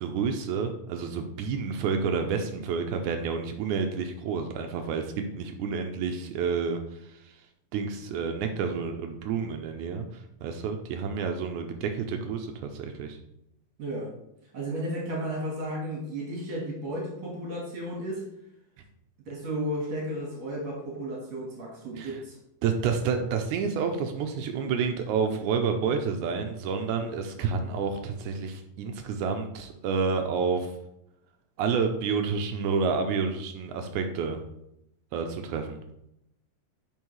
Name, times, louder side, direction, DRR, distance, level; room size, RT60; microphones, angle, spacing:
voice 1, 0.0-6.8 7.7-10.1 10.4-13.2 22.0-22.1 22.6-30.8 31.6-34.4 35.1-35.8, right 5 dB, 80° right, 6 dB, 1.8 m, -29 dB
voice 2, 13.8-14.1 14.5-18.2 19.3-22.4, right 1 dB, 55° right, -2 dB, 2.6 m, -33 dB
9.2 x 5.3 x 3.1 m, 0.82 s
omnidirectional pair, 3.9 m